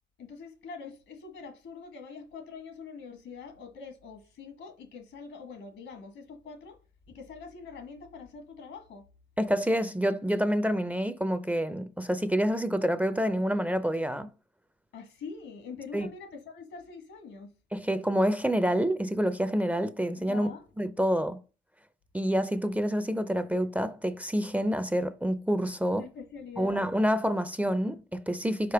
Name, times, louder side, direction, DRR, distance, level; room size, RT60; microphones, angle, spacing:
voice 1, 0.2-6.8 7.1-9.1 14.9-17.5 20.2-20.7 25.9-26.8, left 5 dB, 80° left, 1.7 m, -44 dB
voice 2, 9.4-14.3 15.9-16.1 17.7-20.5 20.8-21.4 22.1-26.0 26.6-28.7, equal, 5° right, 0.5 m, -27 dB
5.1 x 4.2 x 5.7 m
cardioid pair, 90°, 20 cm